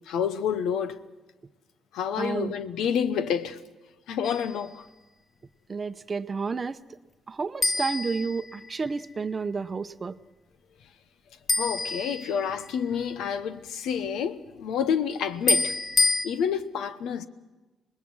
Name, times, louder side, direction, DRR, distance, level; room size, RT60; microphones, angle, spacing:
voice 1, 0.1-1.0 1.9-3.6 4.1-4.8 11.6-15.8 16.2-17.3, left 7 dB, 85° left, 1.0 m, -28 dB
voice 2, 2.2-2.5 5.7-6.8 7.3-10.2, right 4 dB, 35° right, 0.7 m, -31 dB
sound 1, 4.2-4.7 7.6-9.0 11.5-12.8 15.5-16.3, left 3 dB, 30° left, 1.0 m, -27 dB
25.5 x 20.0 x 6.2 m
cardioid pair, 90°, 0 cm